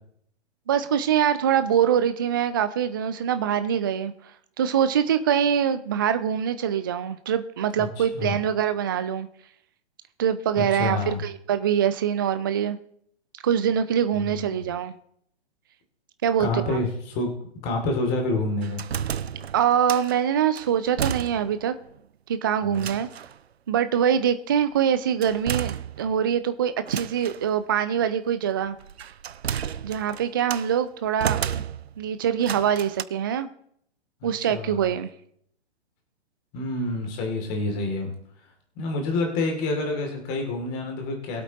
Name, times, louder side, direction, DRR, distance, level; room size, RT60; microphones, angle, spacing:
voice 1, 0.7-9.3 10.2-12.8 13.4-15.0 16.2-16.8 19.5-21.7 22.3-23.1 23.7-28.8 29.8-31.6 32.0-33.5 34.2-35.1, right 8 dB, 20° right, 11 dB, 0.3 m, -24 dB
voice 2, 7.8-8.3 10.6-11.2 14.1-14.6 16.4-17.3 17.6-18.8 22.6-22.9 34.2-34.9 36.5-38.1 38.8-41.4, left 2 dB, 25° left, 3 dB, 2.6 m, -28 dB
sound 1, 18.6-20.2 20.5-21.7 22.0-22.1 22.7-23.4 25.2-26.3 26.8-27.4 28.6-30.7 31.2-32.0 32.4-33.0, right 8 dB, 65° right, 0.6 m, -32 dB
22.0 x 8.1 x 2.9 m, 0.69 s
figure-of-eight pair, 120°, 33 cm